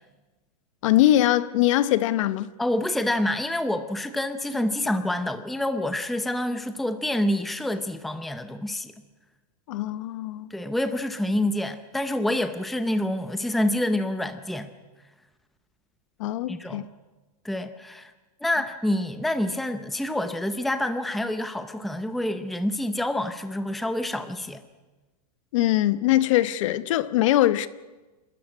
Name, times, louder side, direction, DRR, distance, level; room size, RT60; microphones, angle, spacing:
voice 1, 0.8-2.5 9.7-10.5 16.2-16.8 25.5-27.7, left 14 dB, 50° left, 0.9 m, -22 dB
voice 2, 2.6-8.9 10.5-14.7 16.5-16.9 17.4-18.1 18.4-24.6, left 1 dB, ahead, 0.6 m, -27 dB
27.5 x 13.0 x 9.5 m
supercardioid pair, 165°, 20 cm